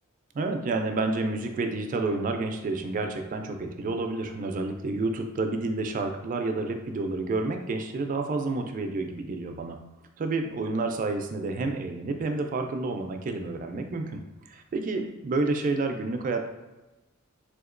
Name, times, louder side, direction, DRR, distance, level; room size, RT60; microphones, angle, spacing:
voice 1, 0.3-9.8 10.2-14.2 14.5-16.5, right 3 dB, 40° right, 5 dB, 0.3 m, -29 dB
3.6 x 2.8 x 2.5 m, 1.1 s
head